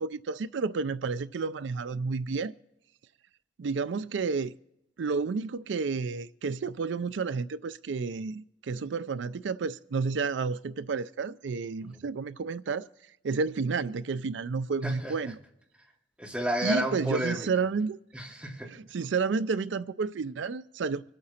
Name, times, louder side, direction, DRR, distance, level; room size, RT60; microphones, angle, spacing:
voice 1, 0.0-2.5 3.6-4.5 5.0-12.9 13.2-15.4 16.6-18.0 18.7-21.0, right 4 dB, 85° right, 0.4 m, -31 dB
voice 2, 14.8-15.1 16.2-17.5 18.1-18.7, equal, 5° right, 2.6 m, -31 dB
25.0 x 8.7 x 4.3 m
head